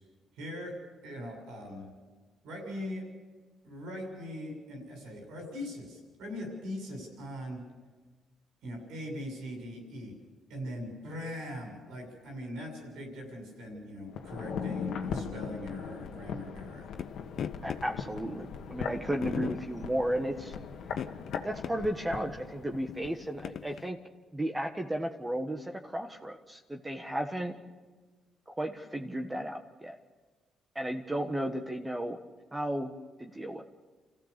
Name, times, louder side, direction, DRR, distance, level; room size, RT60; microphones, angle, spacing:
voice 1, 0.3-0.7 1.0-1.9 2.4-3.0 3.6-7.6 8.6-10.1 10.5-16.9, left 1 dB, 85° right, 2 dB, 7.1 m, -41 dB
sound 1, 14.1-23.2 23.4-23.5, left 6 dB, 80° left, 1.8 m, -39 dB
sound 2, 17.0-17.1 17.4-17.8 18.7-18.8 19.2-19.6 20.9-21.7 22.2-22.3 22.9-23.9, left 8 dB, 60° left, 0.9 m, -37 dB
voice 2, 17.6-20.5 21.4-24.0 24.3-27.6 28.6-29.9 30.7-32.2 32.5-32.9 33.2-33.6, right 1 dB, 15° right, 3 dB, 1.5 m, -34 dB
29.0 x 14.5 x 6.9 m, 1.3 s
cardioid pair, 90°, 0 cm